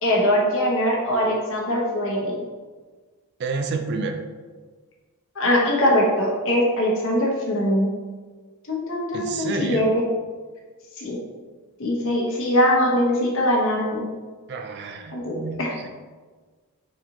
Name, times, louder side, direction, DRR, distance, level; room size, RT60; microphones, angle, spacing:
voice 1, 0.0-2.3 5.4-7.9 8.7-10.0 11.0-11.2 11.8-14.1 15.1-15.7, equal, 60° left, -2 dB, 1.1 m, -22 dB
voice 2, 3.4-4.2 9.1-9.9 14.5-15.9, right 4 dB, 50° right, 5 dB, 0.4 m, -29 dB
4.2 x 3.0 x 3.8 m, 1.4 s
head